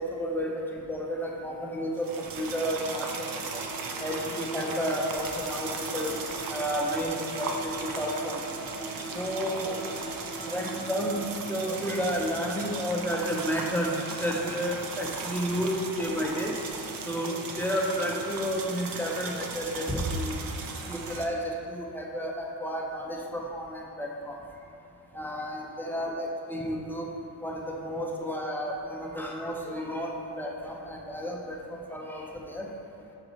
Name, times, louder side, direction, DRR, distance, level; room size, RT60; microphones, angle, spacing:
voice 1, 0.0-3.1 3.3-3.6 4.0-6.1 6.5-7.5 7.8-8.4 9.1-9.8 10.4-11.2 11.5-16.7 17.0-20.4 20.9-24.4 25.1-27.1 27.4-32.7, equal, 5° left, -2 dB, 0.6 m, -31 dB
sound 1, 2.0-21.2, right 4 dB, 50° right, 0.6 m, -37 dB
sound 2, 3.2-11.4, right 1 dB, 20° right, 1.3 m, -42 dB
6.3 x 4.7 x 3.9 m, 2.9 s
cardioid pair, 140°, 46 cm